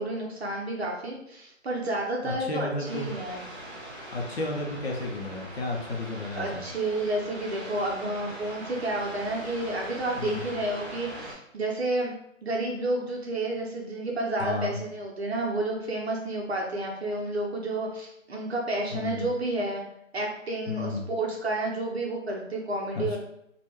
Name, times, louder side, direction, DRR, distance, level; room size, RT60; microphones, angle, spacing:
voice 1, 0.0-3.4 6.4-12.1 12.4-19.8 20.1-23.2, right 2 dB, 55° right, -1 dB, 0.6 m, -30 dB
voice 2, 2.2-3.1 4.1-6.6 10.2-10.6 14.4-14.8 18.9-19.3 20.7-21.0 23.0-23.2, left 2 dB, 50° left, 0 dB, 0.6 m, -32 dB
sound 1, 2.8-11.3, right 1 dB, 15° right, 1.4 m, -42 dB
3.2 x 2.2 x 3.0 m, 0.77 s
hypercardioid pair, 160°, 39 cm